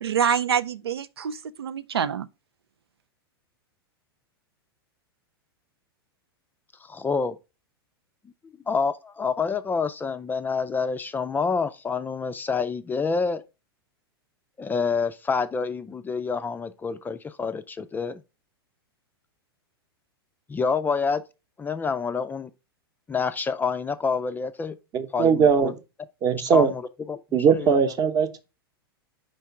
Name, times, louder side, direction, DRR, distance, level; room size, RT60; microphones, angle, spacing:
voice 1, 0.0-2.3, right 8 dB, 80° right, 0.4 m, -26 dB
voice 2, 6.8-7.4 8.7-13.4 14.6-18.2 20.5-21.2 21.6-22.5 23.1-24.8 25.1-25.7 26.5-27.8, left 5 dB, 15° left, 0.4 m, -27 dB
voice 3, 24.9-25.7 26.2-26.7 27.3-28.4, right 6 dB, 30° right, 0.9 m, -20 dB
5.1 x 3.6 x 5.7 m
hypercardioid pair, 100°, 13 cm